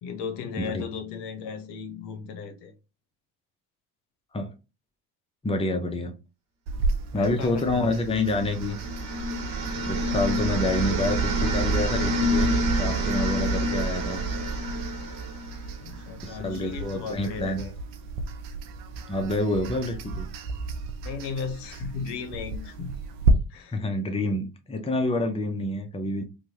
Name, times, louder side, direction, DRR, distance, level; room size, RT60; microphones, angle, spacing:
voice 1, 0.0-2.7 7.1-7.9 15.8-17.8 21.0-22.9 23.3-23.8, left 6 dB, 70° left, 0.8 m, -36 dB
voice 2, 5.4-6.1 7.1-8.8 9.9-14.2 16.2-17.6 19.1-20.3 23.7-26.2, left 2 dB, 15° left, 0.7 m, -28 dB
sound 1, 6.7-23.3, right 3 dB, 75° right, 0.6 m, -34 dB
sound 2, 8.0-16.0, right 1 dB, 50° right, 1.0 m, -27 dB
3.0 x 2.4 x 2.7 m
hypercardioid pair, 60°, 44 cm